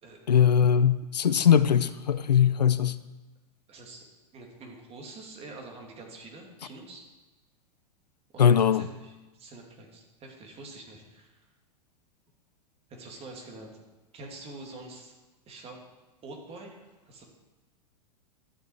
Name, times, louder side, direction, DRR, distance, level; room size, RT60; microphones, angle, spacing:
voice 1, 0.3-3.0 8.4-8.8, left 8 dB, 85° left, 0.5 m, -21 dB
voice 2, 3.7-4.1 4.3-7.1 8.3-11.4 12.9-13.8 14.1-15.1 15.5-15.8 16.2-17.3, right 2 dB, 30° right, 2.7 m, -46 dB
12.5 x 7.0 x 4.8 m
hypercardioid pair, 100°, 21 cm